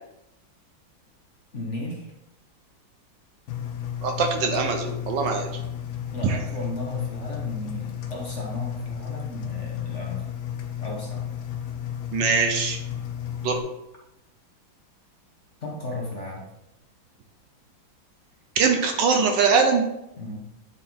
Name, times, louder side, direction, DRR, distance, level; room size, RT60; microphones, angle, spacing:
voice 1, 1.5-2.1 6.1-10.2 10.8-11.3 15.6-16.5 20.2-20.4, left 2 dB, 45° left, -2 dB, 1.2 m, -34 dB
Engine, 3.5-13.6, left 10 dB, 85° left, 1.5 m, -33 dB
voice 2, 4.0-5.5 6.2-6.4 12.1-12.8 13.4-13.6 18.6-19.8, right 5 dB, 70° right, 4 dB, 1.4 m, -22 dB
8.9 x 4.4 x 3.6 m, 0.87 s
omnidirectional pair, 2.2 m